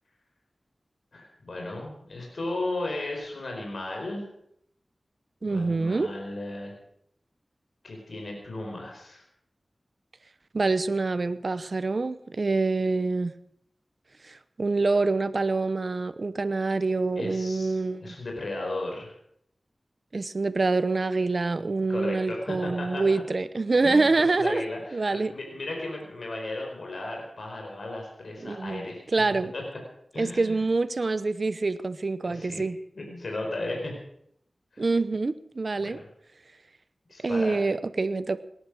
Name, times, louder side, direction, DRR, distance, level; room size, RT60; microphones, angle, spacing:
voice 1, 1.1-4.2 5.4-6.7 7.8-9.2 17.2-19.1 21.9-23.2 23.8-29.0 29.5-29.6 30.1-30.6 32.2-32.6 33.0-33.9 34.7-34.8 35.8-36.0 37.1-37.6, left 2 dB, 75° left, 1 dB, 4.7 m, -35 dB
voice 2, 5.4-6.1 10.5-13.3 14.3-18.2 20.1-24.6 24.9-25.3 28.4-28.8 29.1-29.5 30.2-32.8 34.8-36.0 37.2-38.4, right 3 dB, 60° right, 13 dB, 0.9 m, -26 dB
18.5 x 11.0 x 6.3 m, 0.71 s
wide cardioid pair, 55°, 0 cm